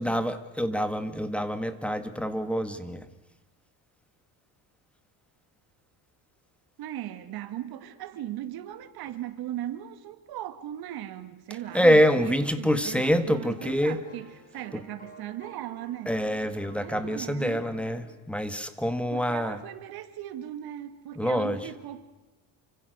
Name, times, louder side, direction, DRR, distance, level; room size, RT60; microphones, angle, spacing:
voice 1, 0.0-3.1 11.7-14.0 14.7-14.8 16.1-19.6 21.2-21.7, equal, 5° left, 2.0 m, -26 dB
voice 2, 6.8-16.1 16.8-17.6 19.1-22.0, right 12 dB, 70° right, 2.6 m, -38 dB
sound 1, 11.6-18.2, right 1 dB, 20° left, 6.0 m, -52 dB
29.0 x 26.0 x 6.6 m
cardioid pair, 130°, 39 cm